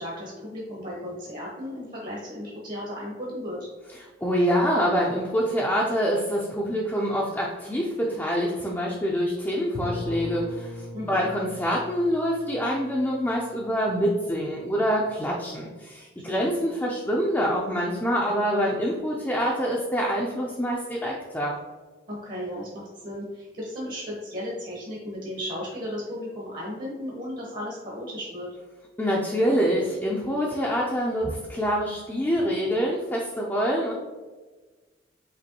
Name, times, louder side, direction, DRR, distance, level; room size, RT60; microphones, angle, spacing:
voice 1, 0.0-3.6 10.9-11.3 16.3-16.6 22.1-28.5, equal, 50° right, -4 dB, 1.0 m, -35 dB
voice 2, 4.2-21.6 29.0-33.9, equal, 10° left, -3 dB, 0.4 m, -26 dB
Bowed string instrument, 9.7-14.6, left 1 dB, 50° left, 0.7 m, -39 dB
5.1 x 3.1 x 2.9 m, 1.3 s
head